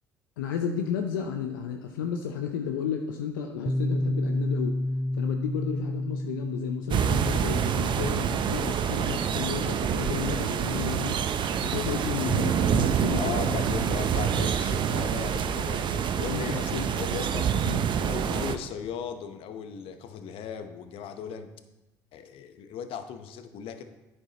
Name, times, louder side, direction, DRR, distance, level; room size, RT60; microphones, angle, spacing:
voice 1, 0.4-4.7 5.1-11.2 11.6-13.9 16.3-16.9 17.6-17.8, left 7 dB, 80° left, 4 dB, 0.6 m, -33 dB
Piano, 3.7-11.1, left 1 dB, ahead, 0.3 m, -32 dB
sound 1, 6.9-18.6, right 8 dB, 50° right, 0.6 m, -27 dB
voice 2, 13.1-16.7 17.0-17.5 18.0-21.5 22.1-23.8, left 7 dB, 60° left, 9 dB, 0.9 m, -37 dB
11.0 x 8.9 x 2.9 m, 1.0 s
hypercardioid pair, 60°, 11 cm